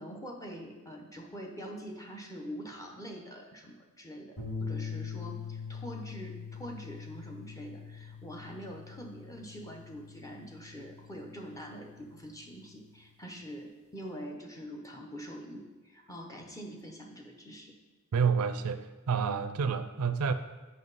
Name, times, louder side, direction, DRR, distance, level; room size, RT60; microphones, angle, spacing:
voice 1, 0.0-17.8, equal, 15° left, 1 dB, 0.8 m, -44 dB
sound 1, 4.4-12.8, left 5 dB, 75° left, 1.9 m, -43 dB
voice 2, 18.1-20.3, right 6 dB, 85° right, 11 dB, 0.4 m, -29 dB
7.5 x 5.6 x 4.0 m, 1.2 s
head